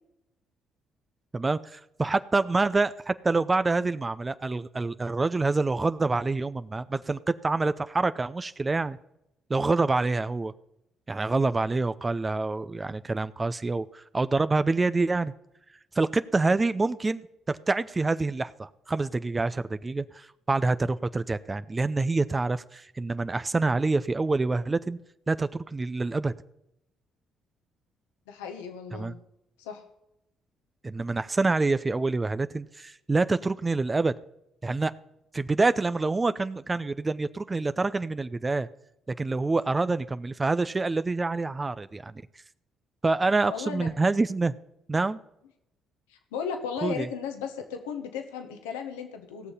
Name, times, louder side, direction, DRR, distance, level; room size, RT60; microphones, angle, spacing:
voice 1, 1.3-9.0 9.5-10.5 11.1-15.3 16.0-25.0 25.3-26.3 28.9-29.1 30.8-34.1 34.6-34.9 35.3-38.7 39.1-42.2 43.0-44.5 44.9-45.2 46.8-47.1, right 3 dB, 25° right, 13 dB, 0.6 m, -26 dB
voice 2, 28.3-29.2 29.6-29.8 43.5-43.9 46.1-49.5, left 6 dB, 85° left, 5 dB, 1.3 m, -35 dB
17.5 x 6.5 x 5.6 m, 0.83 s
hypercardioid pair, 55°, 0 cm